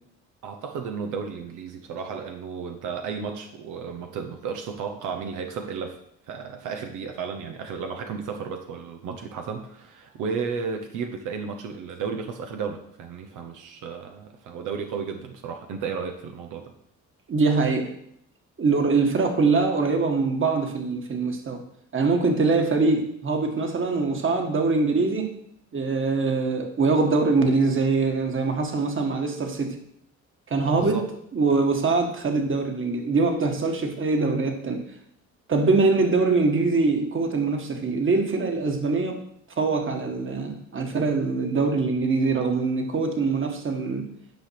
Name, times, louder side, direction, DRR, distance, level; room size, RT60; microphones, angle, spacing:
voice 1, 0.4-6.0 6.3-16.7 30.6-31.1, right 5 dB, 90° right, 5 dB, 1.0 m, -33 dB
voice 2, 17.3-17.9 18.6-21.6 21.9-25.3 25.7-29.8 30.5-31.0 31.3-34.9 35.5-39.2 39.6-44.1, right 3 dB, 40° right, 5 dB, 1.6 m, -23 dB
9.3 x 5.2 x 5.9 m, 0.71 s
cardioid pair, 90°, 30 cm